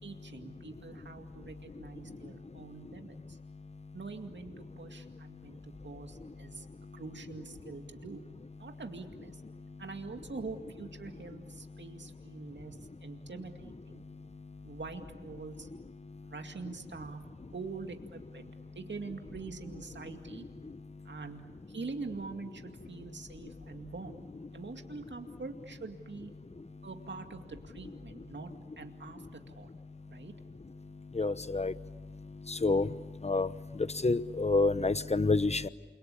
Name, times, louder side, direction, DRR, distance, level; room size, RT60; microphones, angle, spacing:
voice 1, 0.0-3.4 3.9-6.7 6.9-8.2 8.6-9.4 9.8-14.0 14.6-15.7 16.2-17.2 17.5-18.5 18.7-20.5 21.0-21.4 21.7-24.2 24.5-26.3 26.8-28.5 28.8-29.7 30.0-30.3, right 4 dB, 65° right, 5 dB, 2.3 m, -44 dB
voice 2, 31.2-31.7 32.5-32.9 33.2-33.5 34.0-35.7, left 3 dB, 35° left, 15 dB, 1.0 m, -27 dB
28.5 x 23.0 x 8.6 m, 1.4 s
cardioid pair, 55°, 20 cm